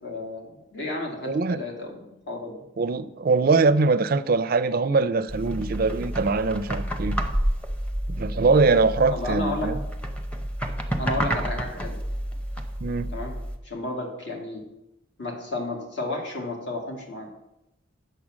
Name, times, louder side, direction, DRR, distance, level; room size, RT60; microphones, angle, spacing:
voice 1, 0.0-2.6 9.1-9.7 11.0-12.0 13.1-13.3 13.6-14.6 15.2-17.3, left 2 dB, 60° left, -1 dB, 2.2 m, -32 dB
voice 2, 1.3-1.6 2.8-7.2 8.1-9.8 12.8-13.1, right 4 dB, 45° right, 13 dB, 0.4 m, -22 dB
sound 1, 5.3-13.6, equal, 5° left, 0.8 m, -30 dB
8.5 x 6.8 x 6.1 m, 0.90 s
head